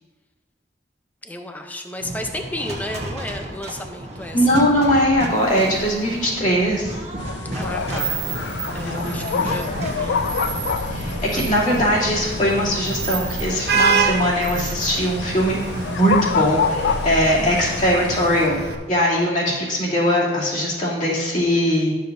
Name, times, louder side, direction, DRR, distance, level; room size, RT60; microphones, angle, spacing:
voice 1, 1.2-4.6 7.5-8.1 8.7-10.2 17.4-17.6, left 1 dB, 10° left, 5 dB, 0.6 m, -32 dB
sound 1, 2.0-18.2, right 1 dB, 35° right, 1.2 m, -34 dB
voice 2, 4.3-7.0 8.9-9.5 10.9-18.6 18.9-21.9, equal, 40° left, -8 dB, 2.8 m, -20 dB
sound 2, 7.2-18.5, left 6 dB, 75° left, 0.3 m, -28 dB
Vehicle horn car horn honking / Traffic noise roadway noise, 7.6-18.7, right 5 dB, 60° right, 0.9 m, -28 dB
12.0 x 6.7 x 2.7 m, 1.3 s
head